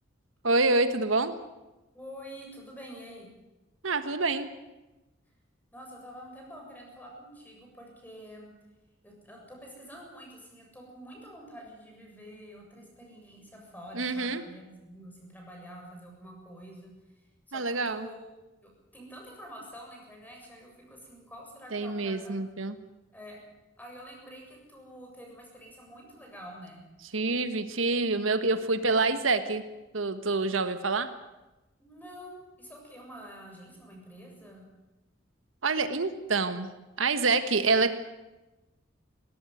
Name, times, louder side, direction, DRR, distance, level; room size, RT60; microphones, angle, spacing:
voice 1, 0.4-1.3 3.8-4.5 13.9-14.4 17.5-18.1 21.7-22.8 27.1-29.6 29.9-31.1 35.6-36.7 37.0-37.9, right 3 dB, 85° right, 10 dB, 1.4 m, -27 dB
voice 2, 1.9-3.3 5.7-8.5 9.0-16.9 17.1-18.3 18.6-22.5 23.1-23.4 23.8-26.8 31.8-34.6, equal, 10° left, 0 dB, 7.5 m, -47 dB
20.0 x 17.5 x 9.3 m, 1.0 s
head